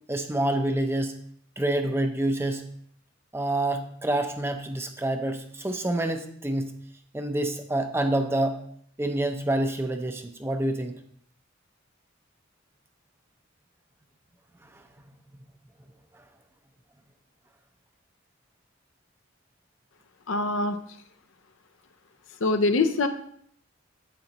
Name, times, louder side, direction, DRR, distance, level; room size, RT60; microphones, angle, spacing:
voice 1, 0.1-1.1 1.6-2.6 3.3-6.7 7.1-8.6 9.0-11.0 14.7-14.8 16.1-16.2, right 1 dB, 10° right, 6 dB, 0.6 m, -27 dB
voice 2, 20.3-20.8 22.4-23.1, left 3 dB, 70° left, 8 dB, 0.6 m, -23 dB
9.3 x 7.6 x 2.9 m, 0.65 s
head